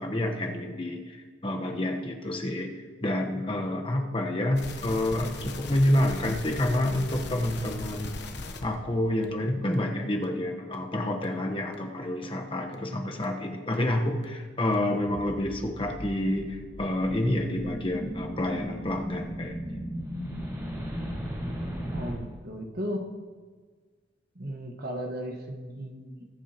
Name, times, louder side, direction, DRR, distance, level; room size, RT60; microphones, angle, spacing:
voice 1, 0.0-2.7 3.0-8.1 8.6-19.6, left 1 dB, 30° left, 2 dB, 1.1 m, -28 dB
sound 1, 4.5-8.7 9.2-9.3 9.7-9.8 10.2-10.3 10.7-10.8 11.2-11.3 11.7-11.8 12.2-12.3 12.7-12.8 13.2-13.3 13.7-13.8 14.2-14.3 14.7-14.8, left 2 dB, 65° left, 1.0 m, -38 dB
sound 2, 14.9-22.1, equal, 20° right, 2.4 m, -36 dB
voice 2, 21.9-23.0 24.3-26.3, equal, 55° right, 2 dB, 1.5 m, -36 dB
21.0 x 8.2 x 3.0 m, 1.5 s
head